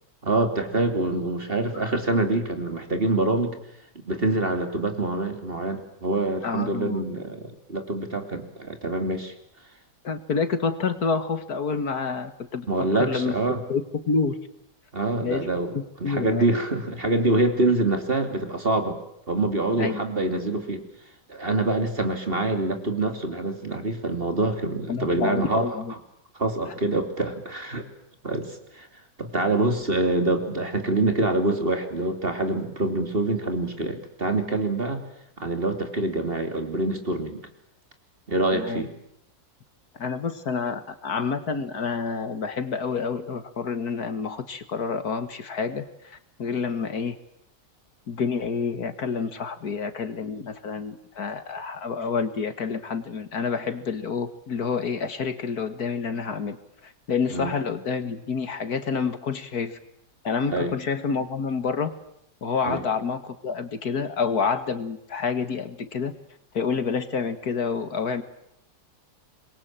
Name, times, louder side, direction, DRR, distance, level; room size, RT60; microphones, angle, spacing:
voice 1, 0.2-3.5 3.9-9.3 12.7-13.6 14.9-19.0 19.3-20.8 21.3-25.7 26.4-27.9 28.2-28.9 29.2-35.0 35.4-37.4 38.3-38.9 57.3-57.5 60.5-60.7 62.6-62.8, right 2 dB, 30° right, 7 dB, 3.2 m, -25 dB
voice 2, 6.4-7.0 10.0-12.7 13.0-13.3 13.7-14.4 15.2-15.5 15.7-16.5 19.8-20.0 24.9-25.9 26.7-26.8 38.5-38.9 40.0-47.2 48.1-56.6 56.8-59.8 60.2-61.9 62.4-66.2 66.5-68.2, left 5 dB, 60° left, 11 dB, 2.1 m, -28 dB
26.0 x 22.5 x 9.0 m, 0.75 s
omnidirectional pair, 1.8 m